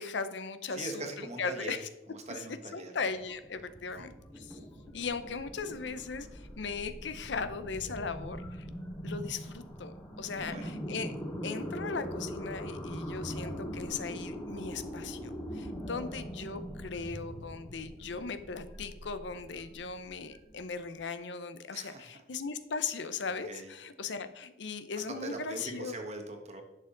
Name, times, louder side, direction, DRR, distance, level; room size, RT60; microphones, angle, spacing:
voice 1, 0.0-1.9 2.7-4.6 4.9-8.7 9.0-11.1 11.4-25.9, left 5 dB, 70° left, 11 dB, 0.7 m, -38 dB
voice 2, 0.7-1.8 2.1-2.9 10.4-10.7 21.7-22.0 23.5-23.7 25.0-26.6, right 2 dB, 35° right, 3 dB, 1.4 m, -41 dB
sound 1, 3.1-20.9, equal, 15° left, 1.4 m, -42 dB
sound 2, 4.1-6.7, equal, ahead, 1.6 m, -53 dB
11.0 x 6.6 x 3.9 m, 1.0 s
head